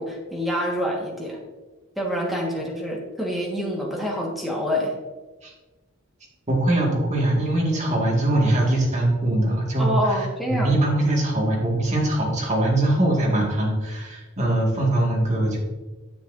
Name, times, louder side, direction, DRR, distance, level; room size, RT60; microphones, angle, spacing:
voice 1, 0.0-1.4 1.9-4.9 9.8-10.8, equal, ahead, -3 dB, 1.6 m, -26 dB
voice 2, 6.5-15.6, right 1 dB, 35° right, -2 dB, 2.1 m, -22 dB
9.8 x 7.7 x 2.7 m, 1.2 s
head